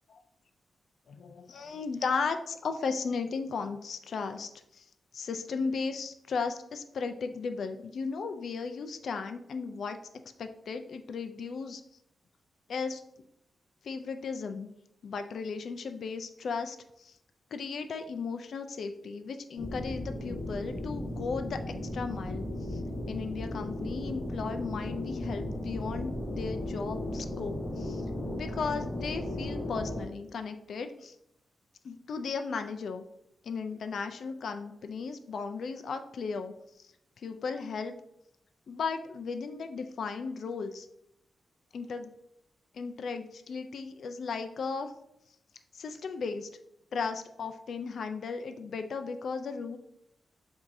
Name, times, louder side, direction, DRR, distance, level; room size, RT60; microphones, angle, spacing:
voice 1, 1.1-4.9 5.1-10.0 10.4-11.8 12.7-13.0 13.8-14.7 15.0-17.1 17.5-21.6 21.9-22.8 23.1-28.0 28.4-31.2 31.8-33.0 33.4-36.5 36.8-36.9 37.2-37.9 38.7-40.9 41.7-42.1 42.7-44.9 45.7-46.5 46.9-49.8, left 5 dB, 70° left, 7 dB, 0.4 m, -35 dB
sound 1, 19.6-30.0, left 1 dB, 10° left, 1.5 m, -36 dB
7.6 x 2.7 x 2.6 m, 0.77 s
wide cardioid pair, 125°, 0 cm